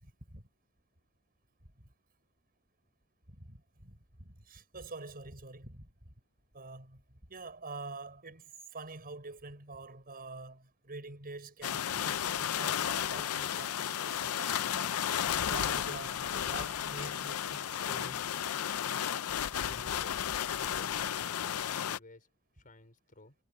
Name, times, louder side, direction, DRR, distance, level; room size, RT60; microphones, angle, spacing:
voice 1, 0.0-0.4 1.8-1.9 3.3-6.1 6.5-7.0 7.3-15.0 15.5-18.3, right 3 dB, 45° right, 6.3 m, -46 dB
sound 1, 11.6-22.0, left 9 dB, 70° left, 0.5 m, -33 dB
voice 2, 19.4-23.3, left 2 dB, 40° left, 5.1 m, -55 dB
head